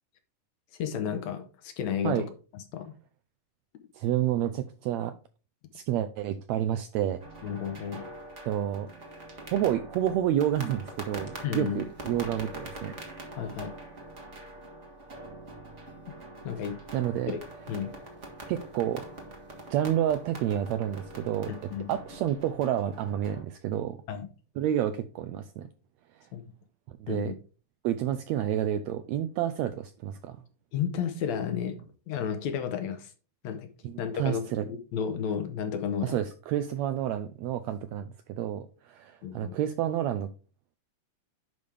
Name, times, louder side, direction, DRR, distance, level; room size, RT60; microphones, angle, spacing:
voice 1, 0.7-2.3 2.5-2.9 7.4-8.0 11.4-11.8 13.4-13.7 16.4-16.8 17.3-17.4 17.7-17.9 21.5-21.9 24.1-24.3 26.3-26.4 27.1-27.3 30.7-33.1 33.4-33.7 34.0-36.2 39.2-39.6, left 8 dB, 70° left, 2.0 m, -32 dB
voice 2, 3.9-5.1 5.7-7.2 8.4-8.9 9.5-12.9 16.9-17.3 18.5-19.1 19.7-21.6 21.9-24.0 24.6-25.7 26.2-26.3 27.0-27.3 27.8-30.4 33.8-34.6 36.0-40.3, right 11 dB, 85° right, 1.6 m, -29 dB
sound 1, 7.2-23.4, right 2 dB, 40° right, 1.0 m, -44 dB
10.5 x 5.2 x 3.4 m
omnidirectional pair, 3.6 m